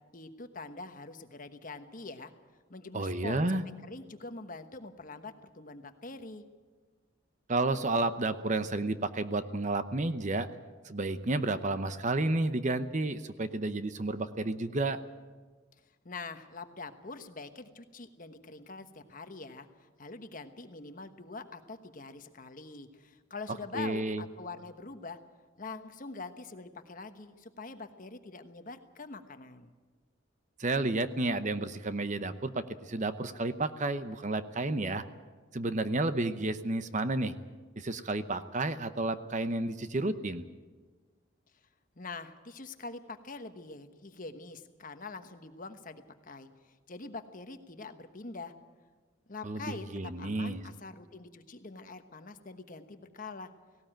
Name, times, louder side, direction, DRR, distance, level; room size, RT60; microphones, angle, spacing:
voice 1, 0.1-2.3 2.7-3.6 3.9-6.4 16.0-25.2 25.6-29.7 42.0-48.5 49.3-53.5, left 3 dB, 40° left, 8 dB, 1.2 m, -44 dB
voice 2, 2.9-3.6 7.5-10.5 10.8-15.0 23.7-24.2 30.6-35.0 35.5-37.3 37.8-40.5 49.4-50.6, right 2 dB, 35° right, 11 dB, 0.8 m, -31 dB
18.0 x 17.5 x 9.0 m, 1.4 s
head